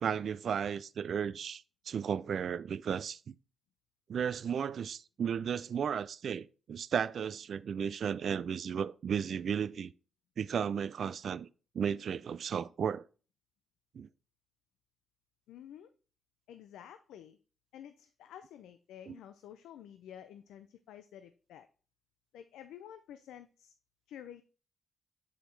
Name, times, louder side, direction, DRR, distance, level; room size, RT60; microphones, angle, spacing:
voice 1, 0.0-3.4 4.1-9.9 10.4-11.5 11.7-13.0 13.9-14.1 19.1-19.2, right 7 dB, 65° right, 0.3 m, -34 dB
voice 2, 15.5-15.9 16.5-17.4 17.7-21.7 22.3-23.7 24.1-24.4, left 10 dB, 80° left, 0.4 m, -50 dB
7.1 x 5.0 x 3.2 m
supercardioid pair, 45°, 0 cm